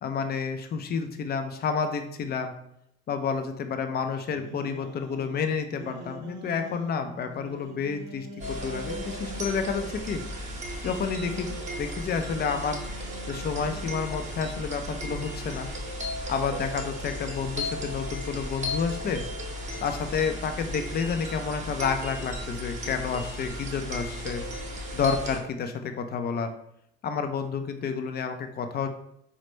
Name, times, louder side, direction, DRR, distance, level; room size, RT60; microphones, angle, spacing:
voice 1, 0.0-2.5 3.1-10.2 10.8-12.8 13.3-15.7 16.3-19.2 19.8-24.4 24.9-26.5 27.0-28.9, left 6 dB, 30° left, 7 dB, 0.5 m, -30 dB
sound 1, 4.1-9.9 10.7-15.8, right 2 dB, 55° right, 0.6 m, -45 dB
sound 2, 8.4-25.4, equal, 25° right, 0.9 m, -35 dB
4.0 x 2.1 x 3.1 m, 0.74 s
hypercardioid pair, 75°, 31 cm